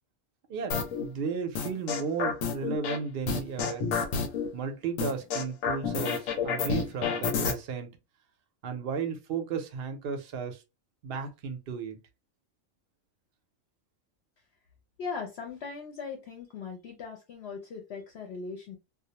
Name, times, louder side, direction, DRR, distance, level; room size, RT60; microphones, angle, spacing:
voice 1, 0.5-3.8 4.5-8.0 8.6-10.6 11.0-12.0, right 5 dB, 60° right, 0.6 m, -34 dB
sound 1, 0.7-1.0 1.6-3.0 3.3-4.5 5.0-7.5, left 5 dB, 90° left, 1.0 m, -29 dB
voice 2, 15.0-18.8, left 5 dB, 65° left, 0.7 m, -39 dB
2.4 x 2.0 x 2.7 m
omnidirectional pair, 1.3 m